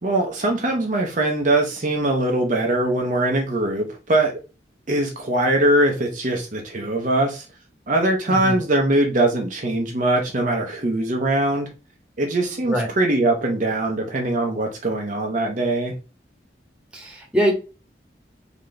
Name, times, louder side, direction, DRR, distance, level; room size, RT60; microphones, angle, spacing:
voice 1, 0.0-4.3 4.9-7.5 7.9-11.7 12.2-15.9, right 1 dB, 45° right, 2 dB, 0.7 m, -21 dB
voice 2, 8.3-8.6 12.6-12.9 16.9-17.5, equal, 5° right, -1 dB, 1.1 m, -23 dB
3.8 x 2.9 x 3.2 m, 0.31 s
head